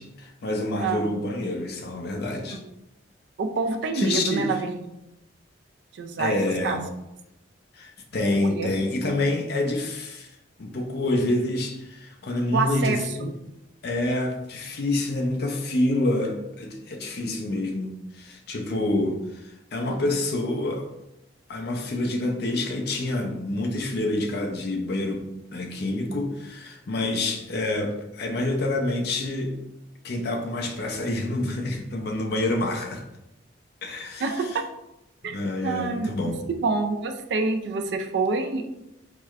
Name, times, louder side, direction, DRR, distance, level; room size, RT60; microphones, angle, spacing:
voice 1, 0.0-2.6 3.9-4.5 6.2-6.9 7.7-10.3 10.6-13.4 13.8-20.9 21.5-25.2 25.5-29.6 30.0-33.0 33.8-34.5 35.2-36.4, left 2 dB, 55° left, 3 dB, 0.5 m, -27 dB
voice 2, 0.8-1.1 2.5-2.6 3.4-5.0 5.9-6.4 6.6-6.8 8.4-8.7 12.5-13.3 19.9-20.1 34.2-34.6 35.2-36.1 36.6-38.7, right 4 dB, 60° right, 5 dB, 0.3 m, -27 dB
4.6 x 2.1 x 2.3 m, 0.89 s
head